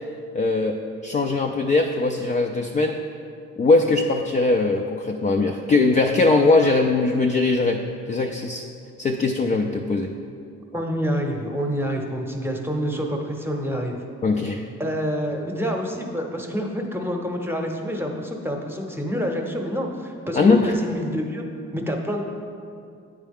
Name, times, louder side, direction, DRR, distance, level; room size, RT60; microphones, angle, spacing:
voice 1, 0.3-3.0 3.6-7.8 8.1-8.7 9.0-10.1 14.2-14.6 20.3-20.8, left 3 dB, 25° left, 2 dB, 0.3 m, -20 dB
voice 2, 10.7-14.0 14.8-21.4 21.7-22.2, equal, 5° right, 2 dB, 0.8 m, -27 dB
8.9 x 4.6 x 3.5 m, 2.5 s
cardioid pair, 90°, 30 cm